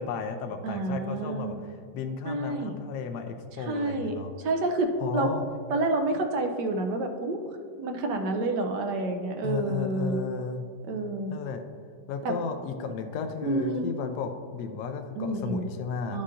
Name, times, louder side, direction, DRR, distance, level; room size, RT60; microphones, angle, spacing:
voice 1, 0.0-1.5 1.9-4.3 5.0-5.4 9.4-10.6 11.3-11.6 12.1-16.2, left 5 dB, 70° left, 6 dB, 1.0 m, -34 dB
voice 2, 0.6-1.6 2.3-2.7 3.6-5.3 5.7-7.4 7.8-10.3 10.9-11.3 12.2-12.3 13.4-13.9 15.2-15.7 16.1-16.2, right 2 dB, 70° right, 5 dB, 1.2 m, -29 dB
11.0 x 5.6 x 2.5 m, 2.1 s
omnidirectional pair, 2.0 m